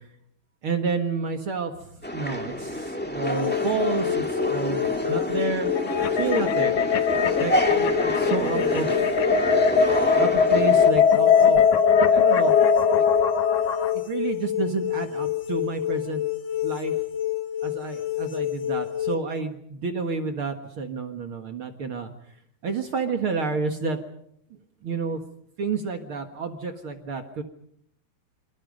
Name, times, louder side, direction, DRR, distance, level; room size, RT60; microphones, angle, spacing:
voice 1, 0.6-1.7 2.1-5.7 6.1-6.8 7.4-8.9 10.2-11.6 12.1-12.6 12.9-13.1 14.1-16.2 16.6-16.9 17.6-22.1 22.6-24.0 24.8-25.2 25.6-27.4, right 4 dB, 50° right, 6 dB, 1.9 m, -30 dB
sound 1, 2.0-10.9, equal, 10° left, 0.4 m, -28 dB
sound 2, 3.2-19.2, left 12 dB, 85° left, 3.8 m, -29 dB
sound 3, 5.8-13.9, left 6 dB, 60° left, 2.3 m, -21 dB
27.0 x 26.0 x 5.2 m, 0.70 s
omnidirectional pair, 4.2 m